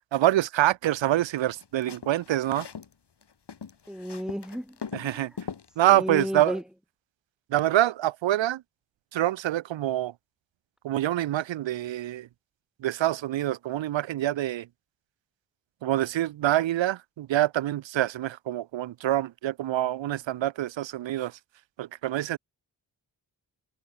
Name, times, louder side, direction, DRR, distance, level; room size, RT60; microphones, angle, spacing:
voice 1, 0.1-2.7 4.9-5.3 5.8-6.6 7.5-8.6 9.1-10.1 10.8-12.3 12.8-14.7 15.8-21.4 21.8-22.4, right 13 dB, 90° right, 0.6 m, -26 dB
sound 1, 1.4-2.9 3.2-5.7, left 6 dB, 65° left, 2.9 m, -40 dB
voice 2, 3.9-5.3 5.9-6.6, equal, ahead, 6.0 m, -33 dB
cardioid pair, 55°, 44 cm